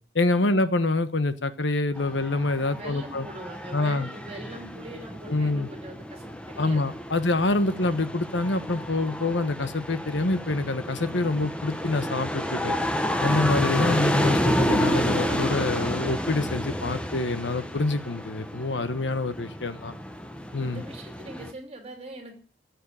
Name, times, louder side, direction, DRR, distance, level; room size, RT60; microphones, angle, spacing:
voice 1, 0.1-3.3 3.7-4.1 5.3-5.7 6.6-12.8 13.2-19.9 20.5-20.8, left 2 dB, 80° left, 11 dB, 1.2 m, -26 dB
sound 1, 2.0-21.5, equal, 5° left, 0.9 m, -30 dB
voice 2, 2.7-7.2 20.5-22.3, right 1 dB, 35° right, 3 dB, 2.9 m, -42 dB
15.0 x 6.6 x 9.6 m, 0.43 s
head